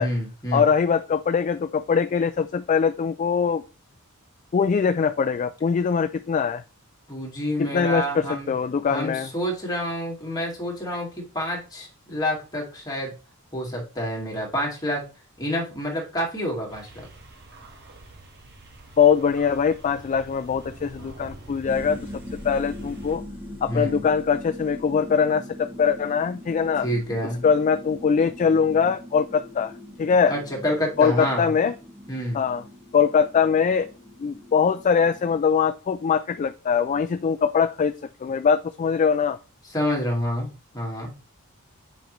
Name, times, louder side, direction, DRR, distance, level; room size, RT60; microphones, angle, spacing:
voice 1, 0.0-0.7 7.1-8.5 8.9-11.1 11.3-13.1 13.5-15.0 15.4-17.1 23.7-24.0 26.8-27.4 30.3-31.5 32.1-32.4 39.7-41.1, equal, 15° left, 2.2 m, -28 dB
voice 2, 0.5-3.6 4.5-6.6 7.6-9.3 19.0-23.2 23.6-26.9 27.4-29.7 30.0-30.3 31.0-31.7 32.3-32.6 32.9-33.9 34.2-37.9 38.2-39.4, left 6 dB, 35° left, 0.3 m, -22 dB
sound 1, 16.7-23.2, right 2 dB, 50° right, 1.4 m, -45 dB
sound 2, 21.7-35.4, left 1 dB, 5° right, 0.7 m, -41 dB
7.8 x 5.1 x 3.1 m
head